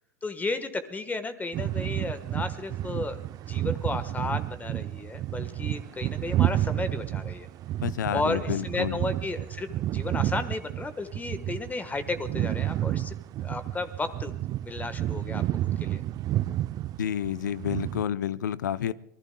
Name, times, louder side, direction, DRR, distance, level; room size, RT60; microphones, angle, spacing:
voice 1, 0.2-3.2 3.5-7.5 8.1-13.1 13.4-15.4 15.8-16.0, left 3 dB, 15° left, 10 dB, 1.3 m, -33 dB
sound 1, 1.5-18.0, right 13 dB, 40° right, 0.5 m, -31 dB
voice 2, 7.8-9.0 17.0-18.9, left 10 dB, 80° left, 17 dB, 0.6 m, -29 dB
26.0 x 20.0 x 2.3 m, 0.81 s
hypercardioid pair, 95°, 10 cm